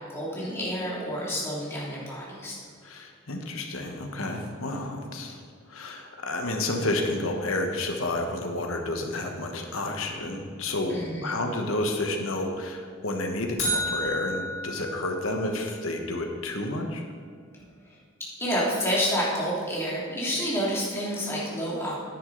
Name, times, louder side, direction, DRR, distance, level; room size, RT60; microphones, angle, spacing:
voice 1, 0.1-2.6 10.9-11.3 18.4-22.0, equal, 10° left, -6 dB, 2.6 m, -29 dB
voice 2, 2.8-5.4 5.7-17.0, left 2 dB, 75° left, 3 dB, 1.3 m, -30 dB
sound 1, 13.6-15.7, equal, 30° left, 2.2 m, -31 dB
10.0 x 9.7 x 4.0 m, 2.1 s
head